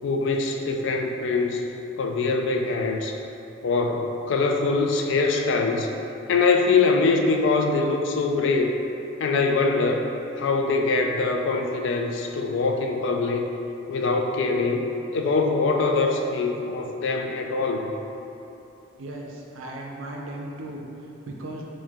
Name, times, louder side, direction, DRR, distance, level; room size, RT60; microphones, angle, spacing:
voice 1, 0.0-1.6 2.0-3.2 3.6-5.9 6.3-8.7 9.2-10.1 10.4-13.5 13.9-14.8 15.1-17.9, left 3 dB, 70° left, 3 dB, 0.3 m, -23 dB
voice 2, 19.0-21.6, right 1 dB, 90° right, -1 dB, 0.5 m, -37 dB
3.7 x 2.6 x 3.5 m, 2.9 s
head